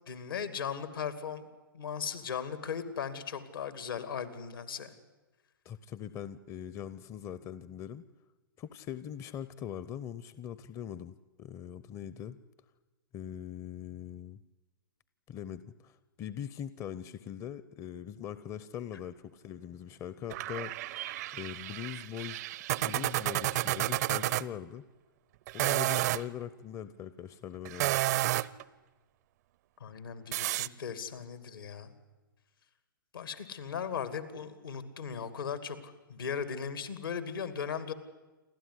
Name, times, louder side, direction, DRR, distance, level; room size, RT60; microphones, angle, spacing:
voice 1, 0.1-1.5 1.7-4.9 29.8-31.9 33.1-37.9, left 7 dB, 75° left, 12 dB, 2.5 m, -37 dB
voice 2, 5.6-8.0 8.6-12.4 13.1-14.4 15.3-21.0 21.3-22.4 22.8-24.8 25.5-28.1, left 10 dB, 25° left, 15 dB, 0.7 m, -42 dB
sound 1, 20.3-24.4 25.5-26.2 27.6-28.6 30.3-30.7, right 16 dB, 50° right, 0.6 m, -31 dB
28.5 x 12.5 x 9.8 m, 1.2 s
hypercardioid pair, 115°, 12 cm